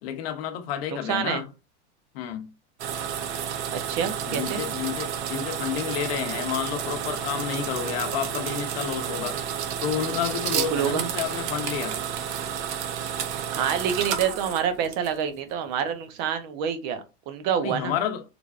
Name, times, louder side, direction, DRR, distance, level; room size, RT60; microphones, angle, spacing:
voice 1, 0.0-1.5 2.1-2.5 4.3-9.4 9.8-12.0 17.6-18.2, left 9 dB, 60° left, 0.8 m, -30 dB
voice 2, 0.9-1.4 3.7-4.6 10.5-11.1 13.5-17.9, right 8 dB, 40° right, 0.6 m, -27 dB
sound 1, 2.8-15.4, right 8 dB, 85° right, 0.7 m, -31 dB
3.5 x 3.3 x 2.4 m
supercardioid pair, 165°, 34 cm